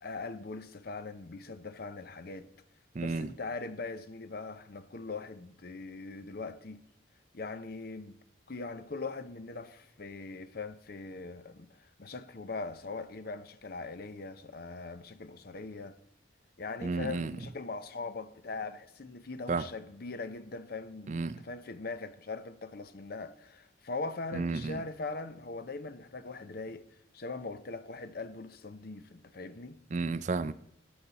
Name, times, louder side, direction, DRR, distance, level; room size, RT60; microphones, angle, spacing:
voice 1, 0.0-2.5 3.0-6.8 7.3-8.2 8.5-16.0 16.6-26.9 27.1-29.8, left 3 dB, 50° left, 0.6 m, -41 dB
voice 2, 3.0-3.3 16.8-17.3 19.5-19.6 21.1-21.4 24.3-24.8 29.9-30.5, right 4 dB, 40° right, 0.4 m, -32 dB
14.0 x 7.9 x 4.0 m
head